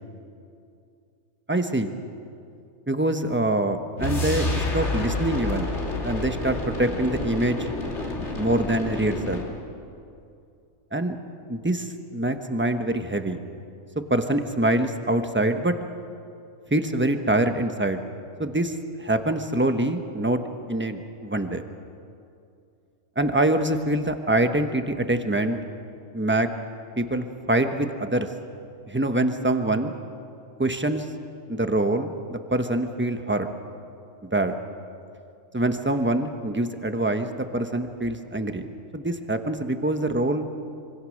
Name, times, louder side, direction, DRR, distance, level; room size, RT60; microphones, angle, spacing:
voice 1, 1.5-1.9 2.9-5.7 6.0-7.7 8.3-9.4 10.9-11.2 11.5-13.4 14.1-15.7 16.7-18.0 18.4-20.4 20.7-21.6 23.2-25.6 26.1-26.5 27.0-28.3 28.9-29.9 30.6-31.1 31.5-33.5 34.3-34.5 35.5-38.7 38.9-40.5, right 1 dB, 10° right, 7 dB, 1.1 m, -25 dB
sound 1, 4.0-9.6, left 2 dB, 55° left, 2.7 m, -29 dB
26.0 x 25.0 x 6.5 m, 2.5 s
omnidirectional pair, 1.4 m